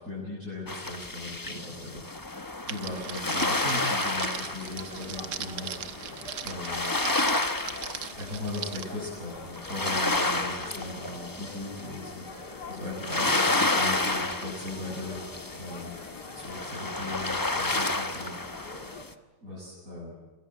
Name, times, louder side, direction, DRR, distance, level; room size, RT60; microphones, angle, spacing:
voice 1, 0.0-2.0 2.6-6.9 8.2-15.3 15.6-15.9 16.3-18.9 19.4-20.1, left 2 dB, 45° right, -7 dB, 8.4 m, -38 dB
sound 1, 0.7-19.1, left 2 dB, 15° left, 0.8 m, -31 dB
Crackle, 2.7-8.8, right 9 dB, 85° right, 1.8 m, -39 dB
sound 2, 4.6-19.1, left 3 dB, 60° left, 2.6 m, -44 dB
27.5 x 20.5 x 8.9 m, 1.2 s
omnidirectional pair, 2.0 m